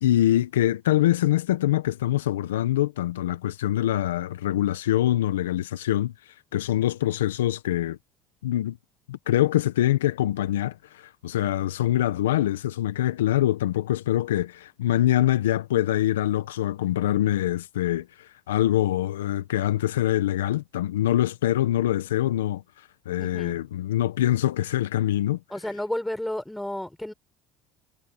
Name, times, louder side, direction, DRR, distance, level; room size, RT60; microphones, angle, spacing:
voice 1, 0.0-6.1 6.5-8.0 8.4-8.8 9.1-22.6 23.0-25.4, left 13 dB, 85° left, 1.3 m, -24 dB
voice 2, 23.2-23.6 25.5-27.1, left 1 dB, 5° left, 6.9 m, -32 dB
hypercardioid pair, 75°, 0 cm